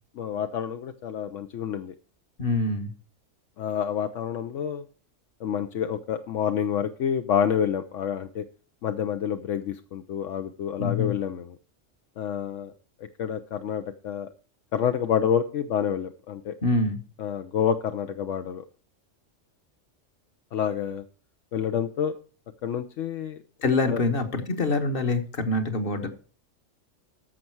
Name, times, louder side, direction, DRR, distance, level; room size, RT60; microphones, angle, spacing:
voice 1, 0.2-1.9 3.6-4.8 5.4-8.4 8.8-11.6 12.2-12.7 13.2-14.3 14.7-16.5 17.2-18.6 20.5-21.0 21.5-22.1 22.6-23.4 23.9-24.0, left 8 dB, 75° left, 7 dB, 1.0 m, -28 dB
voice 2, 2.4-2.9 10.8-11.1 16.6-17.0 23.6-26.1, left 3 dB, 50° left, 7 dB, 1.4 m, -25 dB
14.0 x 5.4 x 4.6 m, 0.38 s
omnidirectional pair, 1.3 m